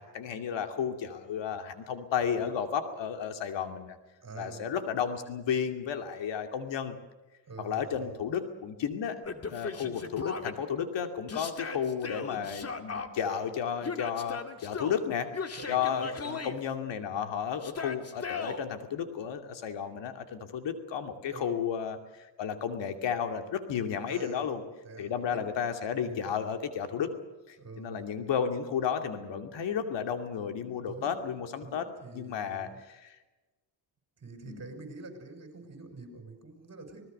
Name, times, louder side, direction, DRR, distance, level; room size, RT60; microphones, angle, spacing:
voice 1, 0.0-4.0 4.4-7.0 7.6-24.6 25.0-27.1 27.5-31.8 32.1-33.2 34.5-34.7, left 7 dB, 75° left, 7 dB, 2.6 m, -33 dB
voice 2, 4.2-4.7 7.5-8.2 9.8-10.0 15.5-16.2 21.3-21.6 24.1-24.5 24.8-25.4 26.1-26.3 27.6-28.0 30.8-32.8 34.2-37.0, right 3 dB, 35° right, 5 dB, 6.3 m, -46 dB
Yell, 9.2-10.5 11.3-13.1 13.8-15.0 15.3-16.6 17.6-18.6, left 4 dB, 35° left, 2.2 m, -37 dB
25.5 x 19.5 x 6.7 m, 1.1 s
cardioid pair, 90°, 44 cm